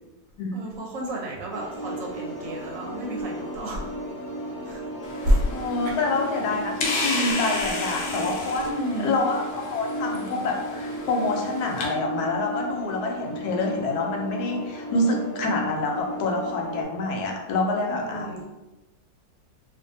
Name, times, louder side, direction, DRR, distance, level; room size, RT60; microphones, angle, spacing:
voice 1, 0.5-3.9 4.6-4.8 5.2-5.4 5.8-6.1 8.5-9.1 17.9-18.4, equal, 70° right, -2 dB, 0.9 m, -29 dB
sound 1, 1.5-16.8, right 1 dB, 45° left, 0.9 m, -35 dB
sound 2, 5.0-11.9, left 3 dB, 70° left, 0.9 m, -33 dB
voice 2, 5.5-8.7 9.0-18.4, left 2 dB, 90° left, 1 dB, 1.1 m, -27 dB
2.6 x 2.3 x 2.6 m, 1.1 s
omnidirectional pair, 1.6 m